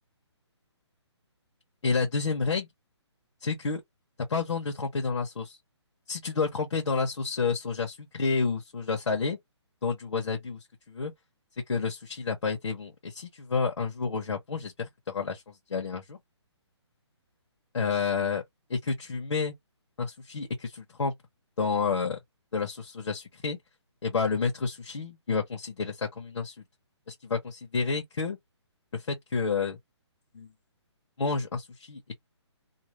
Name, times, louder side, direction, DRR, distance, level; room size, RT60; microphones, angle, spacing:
voice 1, 1.8-2.7 3.4-3.8 4.3-5.6 6.1-9.4 9.8-11.1 11.7-16.2 17.7-18.4 18.7-19.5 20.0-21.1 21.6-22.2 22.5-23.6 24.0-26.5 27.1-28.4 28.9-29.8 30.3-30.5 31.2-32.0, left 4 dB, 80° left, 1.0 m, -30 dB
2.7 x 2.0 x 3.2 m
hypercardioid pair, 175°, 15 cm